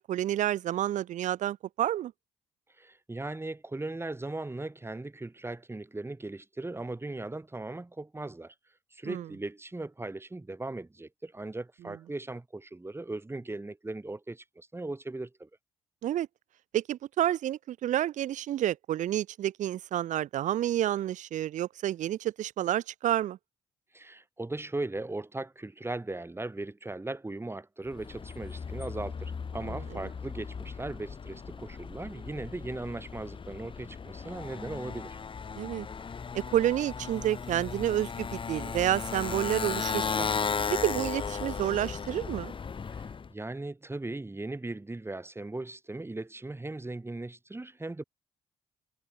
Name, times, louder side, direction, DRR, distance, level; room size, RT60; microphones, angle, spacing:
voice 1, 0.0-2.1 9.0-9.3 11.9-12.0 16.0-16.3 16.7-23.4 29.7-30.1 35.6-35.9 36.3-40.3 40.8-42.5, right 12 dB, 65° right, 6.4 m, -29 dB
voice 2, 2.8-8.5 8.9-15.5 23.9-35.2 42.9-48.0, right 2 dB, 20° right, 6.8 m, -38 dB
Motorcycle, 27.9-43.3, left 5 dB, 40° left, 1.9 m, -36 dB
hypercardioid pair, 50°, 13 cm